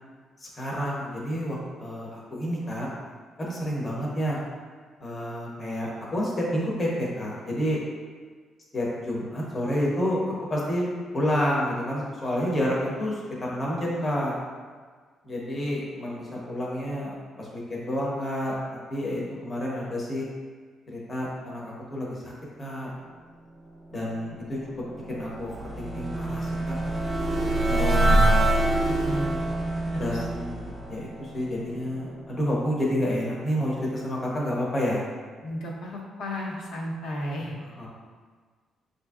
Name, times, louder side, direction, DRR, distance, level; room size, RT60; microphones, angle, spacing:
voice 1, 0.4-2.9 3.4-4.4 5.0-7.8 8.7-14.4 15.2-18.6 18.9-20.3 20.9-22.3 22.6-22.9 23.9-24.6 24.9-26.8 27.6-28.2 28.9-29.4 30.0-35.0 37.8-37.9, equal, 25° left, -5 dB, 0.8 m, -29 dB
sound 1, 24.6-31.8, right 1 dB, 15° right, 0.5 m, -25 dB
voice 2, 27.8-28.2 29.9-30.2 35.4-37.6, left 1 dB, 85° left, -3 dB, 0.8 m, -34 dB
6.0 x 2.5 x 2.4 m, 1.5 s
cardioid pair, 160°, 0 cm